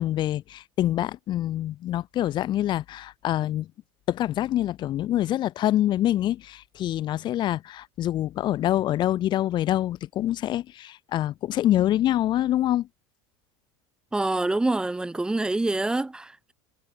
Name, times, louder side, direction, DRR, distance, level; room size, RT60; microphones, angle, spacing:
voice 1, 0.0-3.7 4.1-12.9, left 13 dB, 35° left, 2.1 m, -25 dB
voice 2, 14.1-16.5, right 2 dB, 5° right, 0.7 m, -26 dB
supercardioid pair, 150°, 13 cm